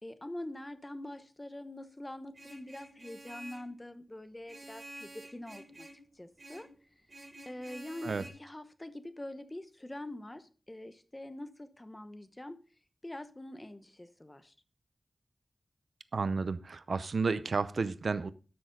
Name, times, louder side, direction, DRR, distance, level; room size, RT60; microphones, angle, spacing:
voice 1, 0.0-5.9 6.1-6.7 7.4-8.1 8.4-12.6 13.0-14.5, left 1 dB, 20° left, 10 dB, 1.0 m, -44 dB
Vehicle horn car horn honking, 2.3-3.7 4.5-6.0 6.4-6.7 7.1-8.3, right 1 dB, 45° right, 3.5 m, -50 dB
voice 2, 16.1-18.3, right 4 dB, 75° right, 14 dB, 0.6 m, -32 dB
12.5 x 6.3 x 3.8 m, 0.36 s
wide cardioid pair, 100°, 0 cm